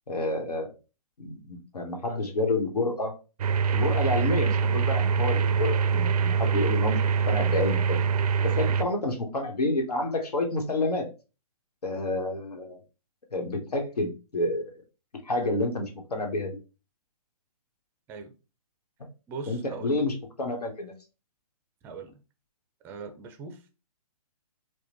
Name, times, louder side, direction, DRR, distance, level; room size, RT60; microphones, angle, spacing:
voice 1, 0.1-0.7 1.2-3.1 3.7-8.0 8.6-11.1 11.8-12.8 13.3-14.7 15.2-16.6 19.5-21.0, left 2 dB, 90° left, 1.3 m, -29 dB
sound 1, 3.4-8.8, right 6 dB, 75° right, 0.4 m, -24 dB
voice 2, 19.3-20.0 21.8-22.2 22.8-23.7, right 4 dB, 10° right, 0.4 m, -41 dB
4.7 x 2.2 x 3.0 m
hypercardioid pair, 145°, 20 cm